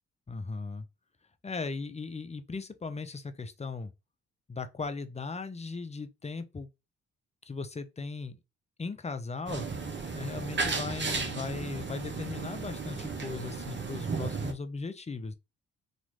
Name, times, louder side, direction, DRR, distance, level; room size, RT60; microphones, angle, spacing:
voice 1, 0.3-0.9 1.4-3.9 4.5-6.7 7.4-8.4 8.8-9.7 10.1-15.3, left 4 dB, 20° left, 0.6 m, -37 dB
sound 1, 9.5-14.5, right 4 dB, 30° right, 1.0 m, -34 dB
3.0 x 2.5 x 3.3 m
hypercardioid pair, 45°, 35 cm